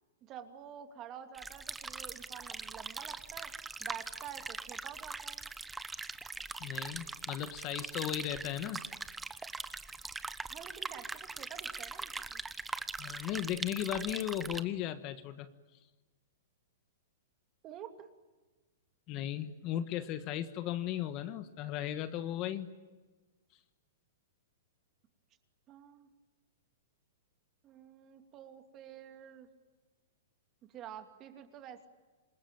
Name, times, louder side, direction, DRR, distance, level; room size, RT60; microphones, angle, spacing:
voice 1, 0.2-3.5 3.8-5.5 10.5-12.4 17.6-18.1 25.7-26.1 27.6-29.5 30.7-31.9, right 9 dB, 30° right, 7 dB, 2.7 m, -49 dB
sound 1, 1.3-14.6, right 3 dB, 10° right, 1.0 m, -42 dB
voice 2, 6.6-8.9 13.0-15.5 19.1-22.7, left 11 dB, 35° left, 11 dB, 1.5 m, -36 dB
27.5 x 21.0 x 9.1 m, 1.3 s
hypercardioid pair, 150°, 0 cm